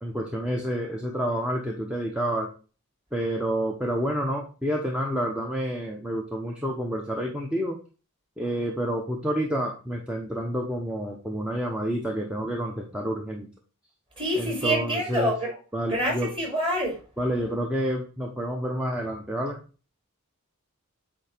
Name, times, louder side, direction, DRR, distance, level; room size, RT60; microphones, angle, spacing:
voice 1, 0.0-2.5 3.1-7.8 8.4-13.5 14.4-15.3 15.7-16.3 17.2-19.6, equal, 5° right, 0.8 m, -29 dB
voice 2, 14.2-15.5 15.9-17.0, equal, 25° right, 2.4 m, -26 dB
8.5 x 2.9 x 4.4 m
head